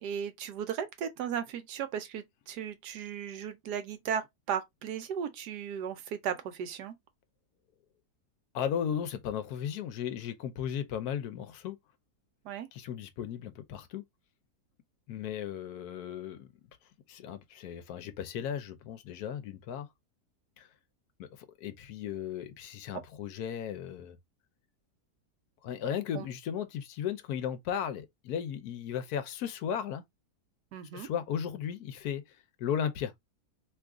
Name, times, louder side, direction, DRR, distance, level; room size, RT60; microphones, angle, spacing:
voice 1, 0.0-7.0 12.4-12.7 26.1-26.3 30.7-31.1, right 8 dB, 85° right, 1.3 m, -36 dB
voice 2, 8.5-11.8 12.7-14.0 15.1-16.5 17.1-19.9 20.6-20.7 21.2-21.3 21.6-24.2 25.6-30.0 30.9-32.2 32.6-33.1, left 9 dB, 75° left, 1.1 m, -35 dB
3.1 x 2.4 x 3.5 m
omnidirectional pair, 1.7 m